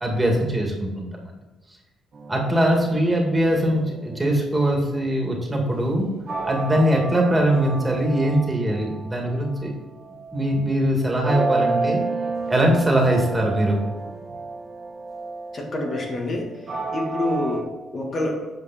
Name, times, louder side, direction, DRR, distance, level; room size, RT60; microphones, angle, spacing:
voice 1, 0.0-1.1 2.3-6.1 6.4-9.7 10.3-12.0 12.5-13.8, right 1 dB, 15° right, 0 dB, 2.1 m, -21 dB
sound 1, 2.1-9.4 9.9-10.9 11.2-17.6, right 3 dB, 45° right, 1.6 m, -31 dB
voice 2, 15.5-16.5 16.9-18.5, left 2 dB, 45° left, 0 dB, 1.6 m, -27 dB
8.3 x 5.2 x 4.2 m, 1.2 s
cardioid pair, 85°, 0 cm